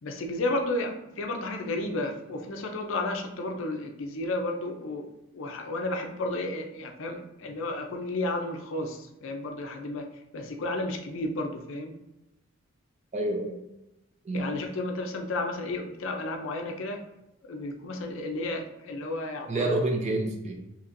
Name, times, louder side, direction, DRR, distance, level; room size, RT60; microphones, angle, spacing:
voice 1, 0.0-5.1 5.3-12.0 14.3-17.1 17.4-19.7, left 2 dB, 65° left, 4 dB, 0.5 m, -32 dB
voice 2, 13.1-13.6 14.2-14.5 19.5-20.7, right 2 dB, 30° right, 3 dB, 0.4 m, -28 dB
4.1 x 2.9 x 2.5 m, 0.89 s
head